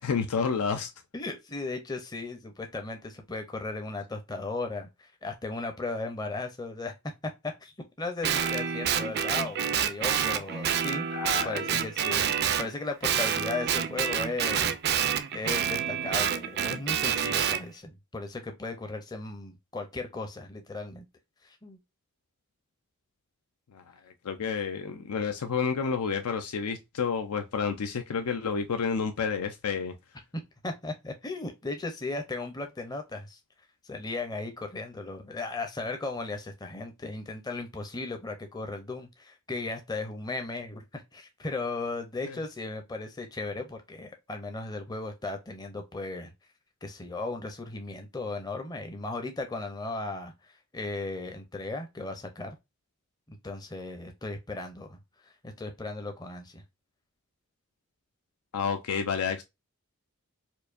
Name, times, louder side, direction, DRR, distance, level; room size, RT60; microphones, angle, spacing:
voice 1, 0.0-0.9 11.1-11.8 23.7-29.9 42.3-42.4 58.5-59.4, left 6 dB, 90° left, 0.5 m, -30 dB
voice 2, 1.1-6.9 7.4-7.7 8.0-11.1 11.4-12.3 12.6-15.0 15.3-21.0 21.4-21.8 30.6-33.4 33.8-46.3 46.8-52.6 53.3-55.0 55.2-56.6, left 3 dB, 15° left, 0.5 m, -36 dB
Guitar, 8.2-12.7 13.0-17.6, right 8 dB, 45° right, 0.3 m, -28 dB
4.4 x 2.5 x 2.5 m
head